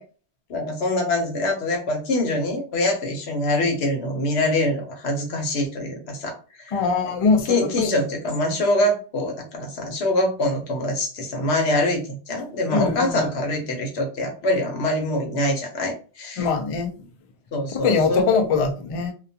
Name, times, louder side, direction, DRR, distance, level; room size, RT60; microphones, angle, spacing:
voice 1, 0.5-6.8 7.5-16.5 17.5-18.3, left 1 dB, 75° left, 2 dB, 1.1 m, -24 dB
voice 2, 6.7-8.1 12.7-13.3 16.4-16.9 17.7-19.1, left 5 dB, 55° left, 4 dB, 0.3 m, -22 dB
2.4 x 2.2 x 2.6 m, 0.36 s
omnidirectional pair, 1.1 m